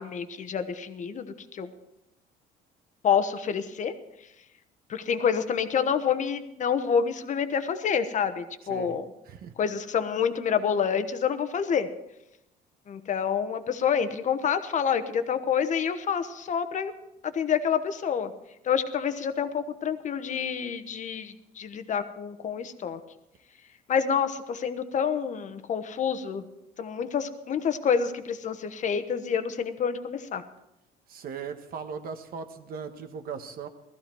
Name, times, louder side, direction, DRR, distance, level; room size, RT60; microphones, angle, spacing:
voice 1, 0.0-1.7 3.0-3.9 4.9-9.0 9.6-11.9 12.9-16.9 17.2-18.3 18.6-23.0 23.9-26.4 26.8-30.4, left 7 dB, 45° left, 10 dB, 1.1 m, -28 dB
voice 2, 8.7-9.0 9.2-9.5 31.1-33.7, right 6 dB, 60° right, 8 dB, 1.4 m, -38 dB
16.5 x 14.0 x 4.6 m, 0.89 s
cardioid pair, 110°, 17 cm